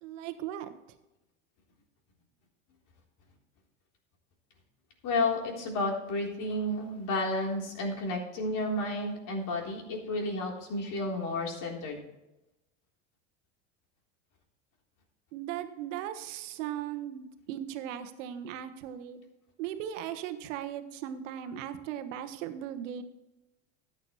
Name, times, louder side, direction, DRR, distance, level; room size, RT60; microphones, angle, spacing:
voice 1, 0.0-0.7 15.3-19.2 19.6-23.0, right 10 dB, 75° right, 10 dB, 1.3 m, -38 dB
voice 2, 5.0-12.0, left 2 dB, 55° left, 0 dB, 3.7 m, -31 dB
13.5 x 9.2 x 3.1 m, 0.98 s
hypercardioid pair, 95°, 37 cm